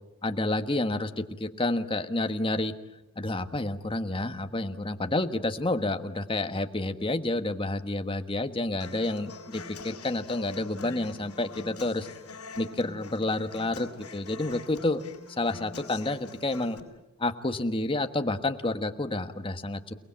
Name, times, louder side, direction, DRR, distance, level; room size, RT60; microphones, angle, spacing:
voice 1, 0.2-2.7 3.2-12.1 12.6-15.0 15.4-16.8 17.2-19.9, left 2 dB, 25° left, 7 dB, 1.4 m, -29 dB
Human voice / Acoustic guitar, 8.8-16.8, left 3 dB, 80° left, 5.9 m, -45 dB
29.5 x 19.5 x 8.8 m, 0.96 s
head